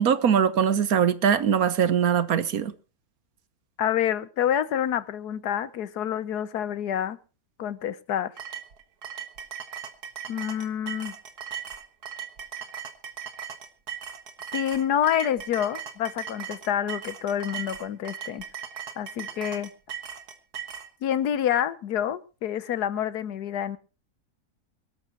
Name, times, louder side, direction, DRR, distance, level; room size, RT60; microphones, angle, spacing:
voice 1, 0.0-2.7, right 8 dB, 70° right, 1.4 m, -22 dB
voice 2, 3.8-7.2 7.6-8.3 10.3-11.1 14.5-18.4 19.0-19.7 21.0-23.8, left 10 dB, 80° left, 1.4 m, -27 dB
sound 1, 8.4-20.9, right 8 dB, 85° right, 2.0 m, -38 dB
24.0 x 13.0 x 2.9 m
omnidirectional pair, 1.7 m